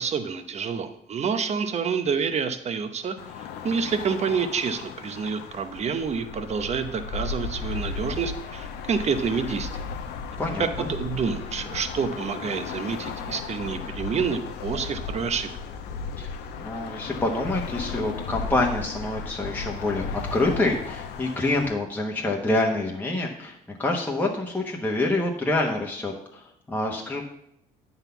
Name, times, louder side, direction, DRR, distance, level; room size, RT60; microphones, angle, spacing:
voice 1, 0.0-3.1 3.6-9.8 10.6-15.5, right 6 dB, 40° right, 9 dB, 0.9 m, -28 dB
sound 1, 3.2-21.7, left 5 dB, 85° left, 0.8 m, -35 dB
voice 2, 10.4-10.9 16.2-27.2, left 2 dB, 10° left, -1 dB, 1.1 m, -27 dB
9.0 x 4.1 x 6.9 m, 0.74 s
cardioid pair, 110°, 17 cm